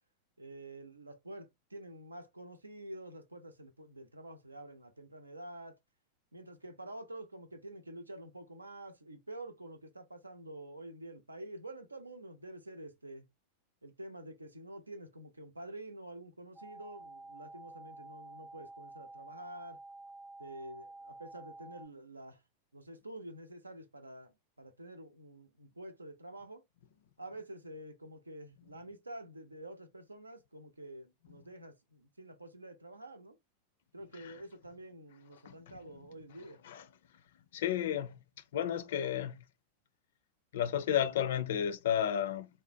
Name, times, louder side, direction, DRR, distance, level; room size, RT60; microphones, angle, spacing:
voice 1, 0.4-5.8 6.3-13.3 13.8-19.8 20.4-22.4 22.7-26.6 27.2-33.4 33.9-36.6, right 1 dB, 80° right, 0.6 m, -48 dB
sound 1, 16.6-21.9, right 2 dB, 10° right, 0.3 m, -50 dB
voice 2, 37.5-38.1 38.5-39.4 40.5-42.5, left 9 dB, 60° left, 0.5 m, -32 dB
3.8 x 2.1 x 2.7 m
figure-of-eight pair, 90°, 0 cm